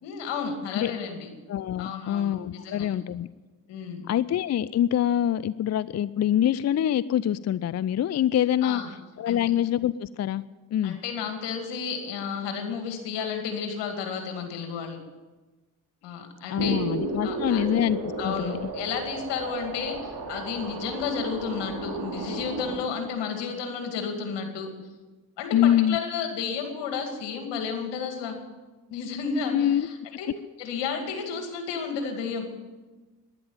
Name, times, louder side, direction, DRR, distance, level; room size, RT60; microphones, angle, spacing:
voice 1, 0.0-1.3 1.8-3.0 3.7-4.0 8.6-8.9 9.3-9.4 10.8-15.0 16.0-16.8 17.2-17.6 18.2-24.7 25.4-28.4 28.9-30.3 30.6-32.5, left 6 dB, 80° left, 4 dB, 2.5 m, -32 dB
voice 2, 1.5-3.3 4.1-8.8 9.2-10.4 10.7-11.0 16.5-18.6 25.5-26.0 29.5-29.9, left 11 dB, 40° left, 18 dB, 0.5 m, -25 dB
sound 1, 16.6-22.8, right 3 dB, 55° right, 3.2 m, -33 dB
11.5 x 10.5 x 9.0 m, 1.2 s
hypercardioid pair, 45°, 42 cm